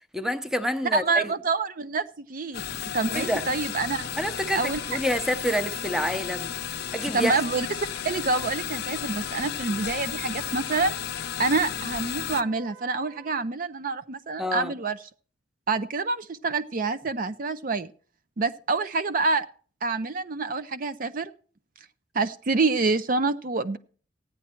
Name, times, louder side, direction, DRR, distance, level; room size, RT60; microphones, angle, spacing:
voice 1, 0.1-1.3 3.1-3.4 4.2-7.3 14.4-14.7, equal, 5° right, 0.8 m, -28 dB
voice 2, 0.9-2.6 2.9-4.1 4.5-4.8 7.1-7.7 8.0-10.9 11.4-15.0 15.7-17.9 18.4-19.5 19.8-21.3 22.1-23.8, right 3 dB, 45° right, 0.5 m, -27 dB
sound 1, 2.5-12.4, left 9 dB, 60° left, 0.5 m, -33 dB
Wind instrument woodwind instrument, 3.0-13.4, right 2 dB, 70° right, 1.9 m, -49 dB
14.5 x 9.7 x 4.4 m
head